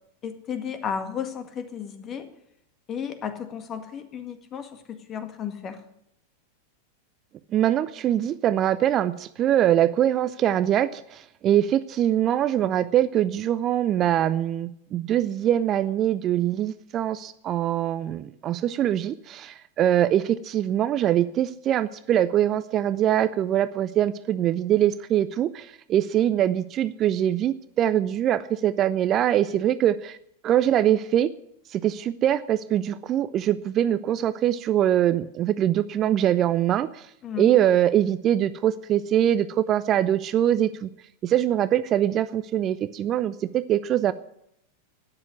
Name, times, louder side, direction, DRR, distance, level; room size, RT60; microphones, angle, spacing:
voice 1, 0.2-2.3 2.9-5.8 37.2-37.5, left 7 dB, 30° left, 9 dB, 1.9 m, -33 dB
voice 2, 7.5-30.2 30.4-31.3 31.7-37.1 37.4-40.9 41.2-44.1, right 11 dB, 30° right, 14 dB, 0.6 m, -23 dB
12.5 x 9.9 x 9.8 m, 0.76 s
figure-of-eight pair, 90°, 0 cm